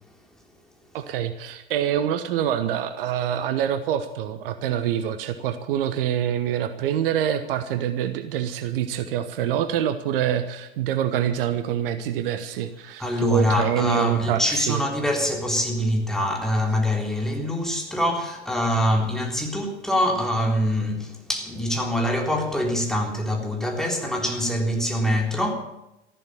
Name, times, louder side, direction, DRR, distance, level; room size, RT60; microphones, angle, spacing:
voice 1, 0.9-14.8, right 10 dB, 60° right, 1.2 m, -26 dB
voice 2, 13.0-25.5, equal, ahead, 3.6 m, -24 dB
14.0 x 12.0 x 8.6 m
figure-of-eight pair, 80°, 32 cm